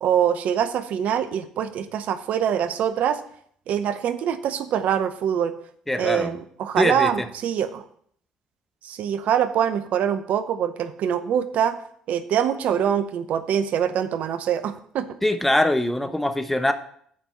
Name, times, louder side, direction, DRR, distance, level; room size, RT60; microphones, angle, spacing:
voice 1, 0.0-3.2 3.7-5.5 6.0-7.8 8.8-11.8 12.1-15.1, right 9 dB, 60° right, 12 dB, 0.7 m, -24 dB
voice 2, 5.9-6.4 6.8-7.1 15.2-16.7, left 1 dB, 5° left, 8 dB, 1.0 m, -22 dB
7.7 x 5.3 x 7.1 m, 0.63 s
hypercardioid pair, 50°, 3 cm